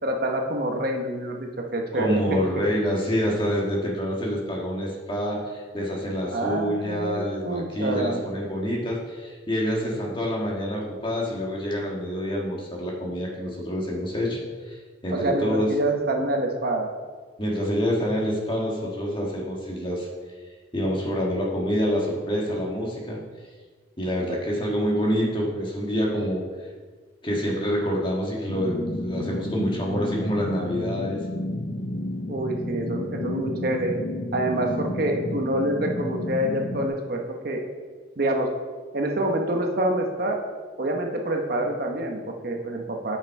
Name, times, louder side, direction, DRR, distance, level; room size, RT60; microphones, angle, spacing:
voice 1, 0.0-2.2 6.3-8.2 15.1-16.9 32.3-33.9 34.3-37.6 38.2-38.5 38.9-40.4 40.8-43.2, right 1 dB, 50° right, 2 dB, 0.9 m, -27 dB
voice 2, 1.9-14.4 14.6-14.8 15.0-15.7 17.4-20.1 20.7-23.2 24.0-26.4 27.2-31.2, equal, 25° left, -2 dB, 1.5 m, -27 dB
sound 1, 28.5-36.9, left 1 dB, 45° left, 0.6 m, -31 dB
8.8 x 5.4 x 4.7 m, 1.5 s
head